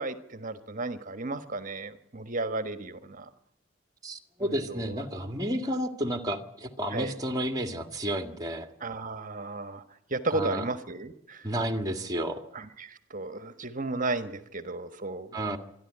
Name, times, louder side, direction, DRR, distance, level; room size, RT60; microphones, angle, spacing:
voice 1, 0.0-3.3 4.4-4.9 6.9-7.1 8.8-9.8 10.1-11.5 12.5-15.6, right 2 dB, 40° right, 10 dB, 1.4 m, -34 dB
voice 2, 4.0-8.7 10.3-10.7 11.4-12.4 15.3-15.6, right 1 dB, 20° right, 6 dB, 1.8 m, -31 dB
26.0 x 11.5 x 10.0 m, 0.81 s
head